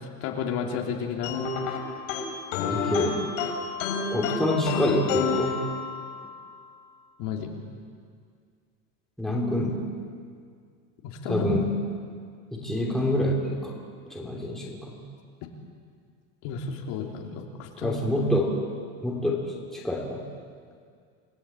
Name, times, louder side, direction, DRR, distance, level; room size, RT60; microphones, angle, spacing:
voice 1, 0.2-1.4 7.2-7.6 11.0-11.5 16.4-18.0, left 6 dB, 55° left, 1 dB, 3.5 m, -32 dB
sound 1, 1.2-6.3, left 5 dB, 80° left, 4.7 m, -30 dB
voice 2, 2.7-3.2 4.1-5.5 9.2-9.8 11.3-11.7 12.5-13.7 14.1-15.0 17.8-18.5 19.0-19.4 19.7-20.2, left 1 dB, ahead, -3 dB, 3.2 m, -26 dB
29.0 x 18.5 x 8.8 m, 2.1 s
cardioid pair, 170°, 38 cm